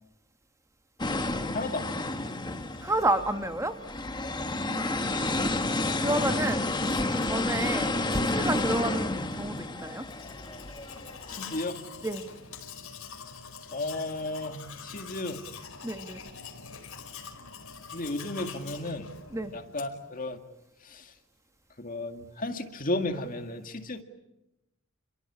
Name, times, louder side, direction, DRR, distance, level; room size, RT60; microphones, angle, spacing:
sound 1, 1.0-11.6, left 2 dB, 20° left, 1.4 m, -30 dB
voice 1, 1.5-2.2 4.3-4.5 11.3-11.8 13.7-15.4 17.9-19.1 19.5-20.4 20.8-21.1 21.8-24.0, left 2 dB, 40° left, 6 dB, 2.2 m, -34 dB
voice 2, 2.8-3.7 4.5-5.3 6.0-6.7 7.0-10.0 12.0-12.2 15.8-16.2 19.3-19.5, right 1 dB, 15° right, 8 dB, 1.5 m, -30 dB
Domestic sounds home sounds, 10.0-20.1, left 6 dB, 85° left, 4.7 m, -44 dB
29.5 x 23.0 x 8.7 m, 0.93 s
head